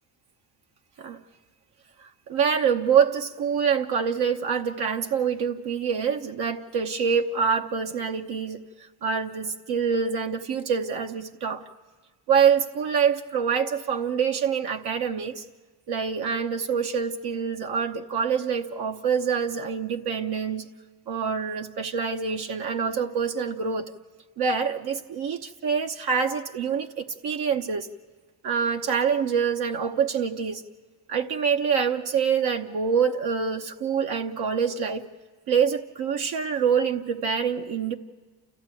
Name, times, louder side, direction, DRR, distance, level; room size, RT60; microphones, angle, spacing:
voice 1, 2.3-8.6 9.0-11.6 12.3-15.4 15.9-20.7 21.1-23.9 24.4-27.9 28.4-30.6 31.1-35.0 35.5-37.9, right 6 dB, 65° right, 1.0 m, -25 dB
29.0 x 14.5 x 9.1 m
cardioid pair, 100°, 41 cm